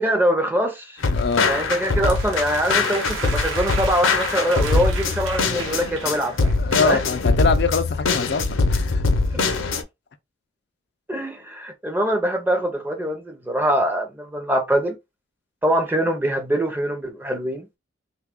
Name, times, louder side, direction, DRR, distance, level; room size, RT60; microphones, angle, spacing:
voice 1, 0.0-1.0 1.5-6.5 6.8-7.0 9.3-9.4 11.1-15.0 15.6-17.7, equal, 10° right, 0.6 m, -23 dB
sound 1, 1.0-9.8, left 3 dB, 90° left, 0.7 m, -22 dB
voice 2, 1.1-1.5 6.6-9.0, left 5 dB, 55° left, 0.4 m, -23 dB
sound 2, 1.8-7.0, right 4 dB, 85° right, 0.9 m, -34 dB
3.2 x 2.3 x 3.4 m
head